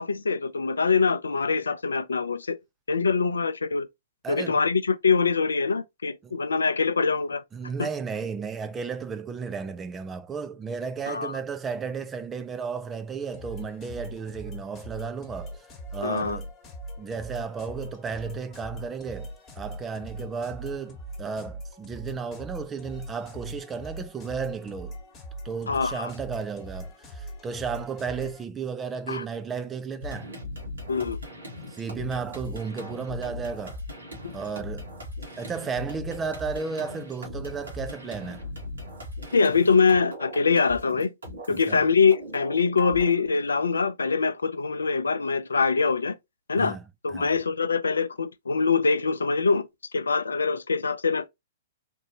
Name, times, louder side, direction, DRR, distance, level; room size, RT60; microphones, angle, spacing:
voice 1, 0.0-2.6 2.9-3.9 4.3-7.4 7.8-7.9 11.1-11.4 16.0-16.4 25.7-26.1 29.1-29.2 30.9-31.2 39.3-41.1 41.5-46.1 46.5-46.8 47.0-49.7 49.9-51.3, left 5 dB, 75° left, 0.4 m, -24 dB
voice 2, 4.2-4.6 6.2-6.4 7.5-15.6 15.9-16.5 17.0-25.0 25.4-30.3 31.7-33.8 34.3-34.9 35.4-38.5 41.5-41.8 46.6-46.9 47.1-47.3, right 5 dB, 15° right, 0.5 m, -34 dB
sound 1, 13.3-28.4, right 1 dB, 25° left, 1.4 m, -41 dB
sound 2, 30.0-41.7 42.1-43.1, left 1 dB, 75° right, 2.0 m, -39 dB
4.3 x 2.6 x 2.8 m
figure-of-eight pair, 115°, 0 cm